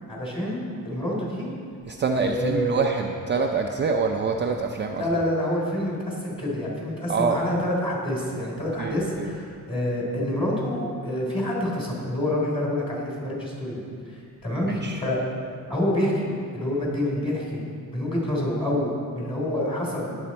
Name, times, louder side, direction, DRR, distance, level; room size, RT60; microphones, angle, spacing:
voice 1, 0.1-0.6 0.8-1.5 2.1-2.8 5.0-14.1 14.4-15.2 15.7-17.6 17.9-20.1, left 1 dB, 15° left, -4 dB, 3.2 m, -27 dB
voice 2, 1.9-5.0 7.1-7.4 8.8-9.3 14.7-15.0, right 5 dB, 30° right, 2 dB, 0.5 m, -26 dB
19.0 x 7.1 x 4.3 m, 2.3 s
wide cardioid pair, 150°, 34 cm